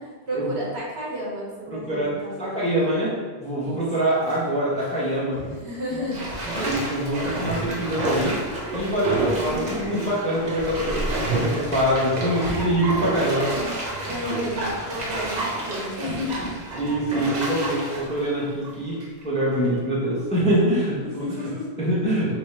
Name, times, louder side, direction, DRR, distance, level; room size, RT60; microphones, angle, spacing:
voice 1, 0.0-2.7 3.6-3.8 5.3-6.2 6.5-6.7 14.1-16.4 20.5-21.7, left 1 dB, 75° right, -6 dB, 1.5 m, -32 dB
voice 2, 1.7-2.1 2.4-5.4 6.4-8.4 8.7-13.5 16.8-19.0 19.2-21.2 21.8-22.4, right 1 dB, 5° left, -7 dB, 0.9 m, -24 dB
Bathtub (filling or washing), 3.9-4.4 4.8-4.9 6.1-19.2 19.7-19.8, right 2 dB, 45° right, 0.7 m, -29 dB
3.5 x 3.0 x 4.3 m, 1.5 s
omnidirectional pair, 1.1 m